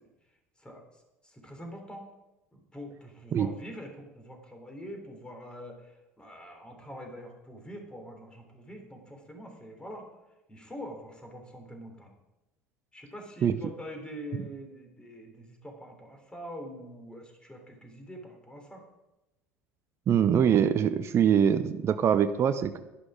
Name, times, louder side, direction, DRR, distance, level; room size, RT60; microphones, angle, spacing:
voice 1, 0.6-2.1 2.5-10.1 10.5-12.1 12.9-18.8, equal, 10° left, 3 dB, 3.4 m, -44 dB
voice 2, 20.1-22.8, right 8 dB, 35° right, 10 dB, 0.7 m, -23 dB
11.5 x 11.0 x 5.0 m, 0.98 s
figure-of-eight pair, 70°, 8 cm